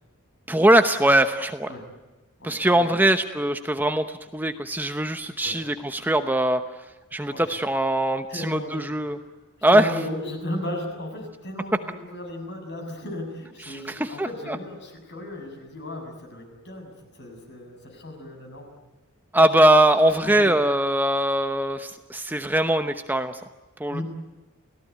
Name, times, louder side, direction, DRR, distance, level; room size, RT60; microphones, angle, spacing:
voice 1, 0.5-1.7 2.4-6.6 7.1-9.2 9.6-9.9 13.6-14.6 19.3-23.4 23.8-24.0, right 1 dB, 10° right, 8 dB, 0.9 m, -21 dB
voice 2, 2.4-3.0 5.4-5.6 7.2-7.5 8.3-9.3 9.7-18.7 20.2-20.6 23.9-24.0, left 1 dB, 50° left, 4 dB, 7.4 m, -36 dB
29.5 x 17.5 x 9.4 m, 1.2 s
head